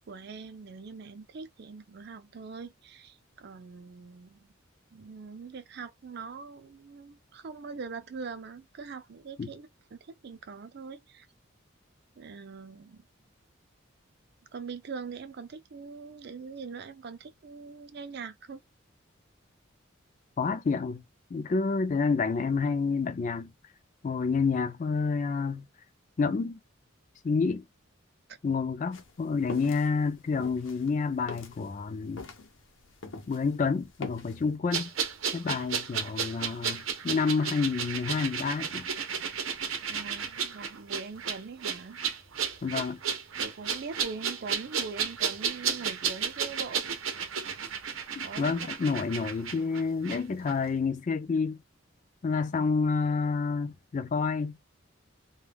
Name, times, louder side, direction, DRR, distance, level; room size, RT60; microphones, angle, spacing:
voice 1, 0.0-4.5 4.9-11.3 12.2-13.1 14.5-18.6 28.3-28.4 39.9-42.0 43.4-46.8 48.2-48.7, right 5 dB, 55° right, 0.4 m, -42 dB
voice 2, 20.4-21.0 21.3-23.5 24.0-25.6 26.2-26.6 27.2-27.6 28.4-32.2 33.3-34.9 35.3-38.9 42.6-43.0 48.2-51.6 52.2-54.6, left 4 dB, 40° left, 0.3 m, -29 dB
sound 1, 28.9-33.5 33.8-34.4, left 3 dB, 75° left, 0.7 m, -42 dB
sound 2, 34.7-50.2 50.5-50.6, right 7 dB, 90° right, 0.7 m, -33 dB
2.2 x 2.2 x 3.3 m
head